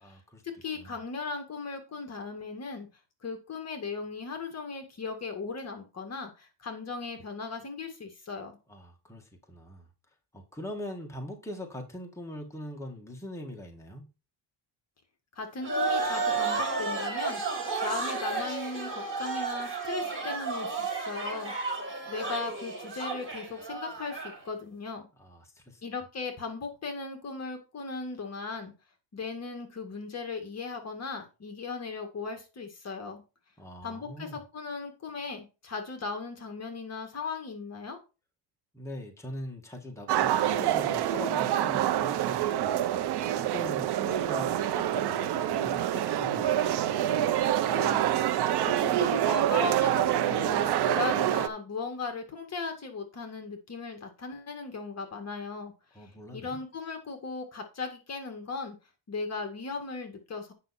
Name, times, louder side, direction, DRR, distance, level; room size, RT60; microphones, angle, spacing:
voice 1, 0.0-0.4 0.8-0.9 8.7-9.8 10.3-14.1 25.2-25.8 33.6-34.4 38.7-42.8 43.3-46.5 56.0-56.6, left 1 dB, 5° left, 2.0 m, -42 dB
voice 2, 0.6-2.9 3.2-8.5 15.4-21.7 22.1-25.1 25.8-28.7 29.1-33.2 33.8-38.0 47.7-48.1 48.7-58.7 59.1-60.5, left 4 dB, 35° left, 1.9 m, -37 dB
sound 1, 15.6-24.4, right 4 dB, 25° right, 4.6 m, -32 dB
sound 2, 40.1-51.5, right 11 dB, 60° right, 0.9 m, -26 dB
9.3 x 5.8 x 4.3 m
cardioid pair, 130°, 44 cm